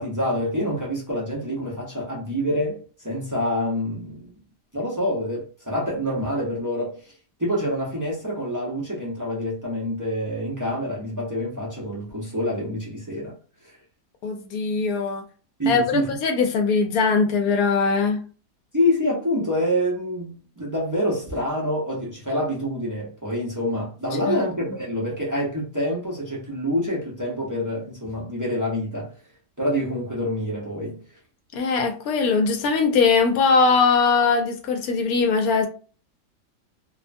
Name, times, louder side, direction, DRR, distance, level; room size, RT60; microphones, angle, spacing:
voice 1, 0.0-4.3 4.7-7.1 7.4-13.3 13.6-13.7 15.6-16.2 18.7-29.1 29.6-31.0, equal, 25° right, 0.3 m, -26 dB
voice 2, 14.2-15.3 15.7-18.2 24.3-24.4 31.5-35.7, left 4 dB, 70° left, 1.0 m, -21 dB
2.8 x 2.2 x 2.5 m
omnidirectional pair, 1.8 m